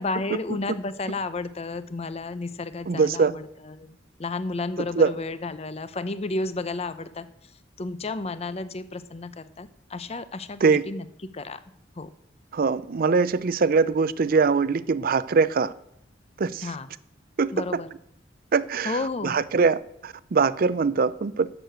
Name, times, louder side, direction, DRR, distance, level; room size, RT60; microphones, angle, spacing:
voice 1, 0.0-7.3 7.8-11.1 11.3-11.6 12.0-12.1 16.6-16.9 17.5-17.9 18.8-19.3, left 3 dB, 35° left, 0.6 m, -32 dB
voice 2, 2.9-3.3 4.9-5.1 10.6-10.9 12.5-15.7 16.4-16.7 17.4-17.8 18.5-21.5, right 4 dB, 50° right, 0.5 m, -22 dB
12.0 x 6.6 x 7.9 m
head